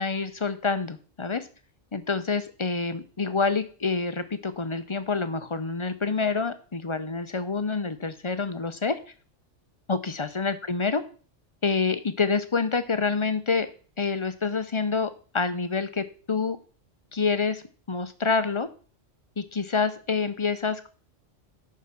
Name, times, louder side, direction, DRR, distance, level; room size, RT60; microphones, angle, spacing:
voice 1, 0.0-1.5 1.9-9.0 9.9-11.0 11.6-13.7 14.0-16.6 17.1-17.6 17.9-18.7 19.4-20.9, left 4 dB, 30° left, 11 dB, 0.6 m, -27 dB
11.0 x 4.8 x 5.8 m, 0.40 s
omnidirectional pair, 1.3 m